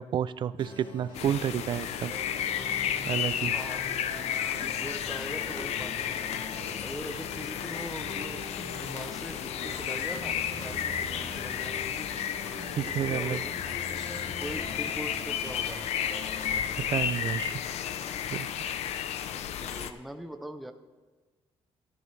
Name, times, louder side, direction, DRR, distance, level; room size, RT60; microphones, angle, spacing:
voice 1, 0.0-2.1 3.1-3.5 12.8-13.4 16.8-17.5 18.3-18.5, right 9 dB, 50° right, 16 dB, 0.4 m, -30 dB
sound 1, 0.6-16.6, left 1 dB, 55° left, 2.1 m, -44 dB
sound 2, 1.1-19.9, left 9 dB, 90° left, 0.6 m, -33 dB
voice 2, 3.5-6.3 6.6-12.2 12.5-14.1 14.4-15.8 19.6-20.7, right 1 dB, ahead, 7 dB, 0.6 m, -42 dB
13.5 x 12.0 x 3.3 m, 1.3 s
cardioid pair, 165°, 11 cm